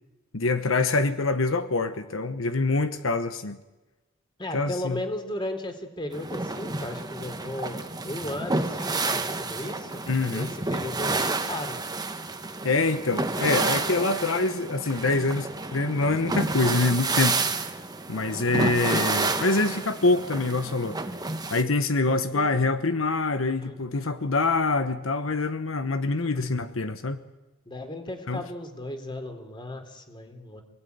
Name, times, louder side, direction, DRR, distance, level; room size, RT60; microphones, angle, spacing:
voice 1, 0.3-3.6 4.5-5.0 10.1-10.5 12.6-17.4 18.1-21.0 21.5-27.2 28.3-28.4, left 3 dB, 85° left, 9 dB, 1.2 m, -25 dB
voice 2, 4.4-10.0 10.3-11.8 22.1-22.7 23.6-23.8 26.2-26.5 27.6-30.6, left 1 dB, 25° left, 6 dB, 3.4 m, -36 dB
sound 1, 6.1-21.6, right 3 dB, 20° right, 1.5 m, -30 dB
27.0 x 19.0 x 9.5 m, 1.1 s
head